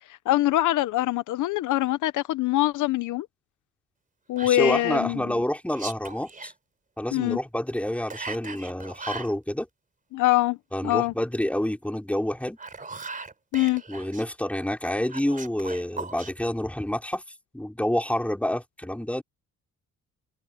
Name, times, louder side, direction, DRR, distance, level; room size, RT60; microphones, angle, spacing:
voice 1, 0.1-3.3 4.3-5.2 7.1-7.4 10.1-10.6 10.8-11.1 13.5-13.8, left 16 dB, 80° left, 0.9 m, -23 dB
voice 2, 4.4-6.5 7.0-9.7 10.7-12.6 13.9-17.2 17.5-19.2, left 1 dB, 5° left, 4.4 m, -28 dB
Whispering, 4.4-5.1 5.7-6.5 8.1-9.3 12.4-14.2 15.1-16.3, right 4 dB, 25° right, 3.8 m, -38 dB
cardioid pair, 90°, 30 cm